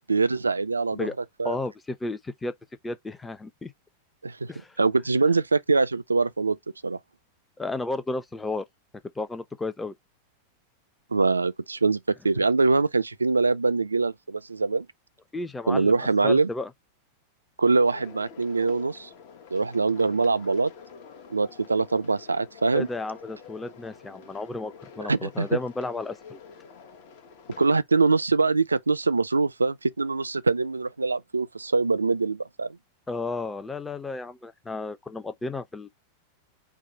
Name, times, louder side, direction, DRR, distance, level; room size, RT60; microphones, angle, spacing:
voice 1, 0.1-1.1 1.4-1.6 4.2-4.5 4.8-6.6 6.8-7.0 11.1-14.9 15.7-16.5 17.6-19.1 19.5-20.7 21.3-22.9 25.1-25.6 27.6-32.8, right 4 dB, 80° right, 0.4 m, -23 dB
voice 2, 1.4-2.5 2.8-3.7 4.5-4.8 7.6-8.6 9.2-9.9 15.3-16.0 16.2-16.7 22.7-26.4 33.1-35.9, left 3 dB, 10° left, 0.6 m, -33 dB
sound 1, 17.9-27.8, left 6 dB, 50° left, 1.0 m, -47 dB
4.8 x 2.1 x 4.6 m
figure-of-eight pair, 90°, 0 cm